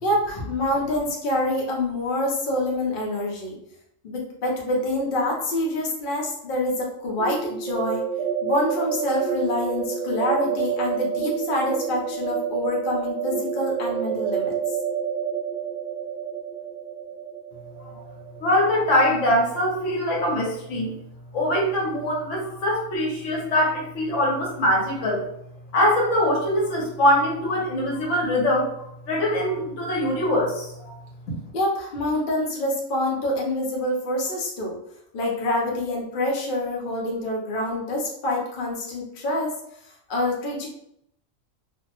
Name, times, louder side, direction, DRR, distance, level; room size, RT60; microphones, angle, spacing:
voice 1, 0.0-3.6 4.0-8.1 8.4-14.6 31.5-34.8 35.1-39.5 40.1-40.7, left 1 dB, 50° left, -2 dB, 0.7 m, -26 dB
sound 1, 7.2-18.9, right 7 dB, 70° right, 0.9 m, -28 dB
voice 2, 18.4-20.9 21.3-25.3 25.7-30.9 31.3-31.4, left 1 dB, 70° left, -2 dB, 1.0 m, -23 dB
2.6 x 2.0 x 2.8 m, 0.77 s
omnidirectional pair, 1.3 m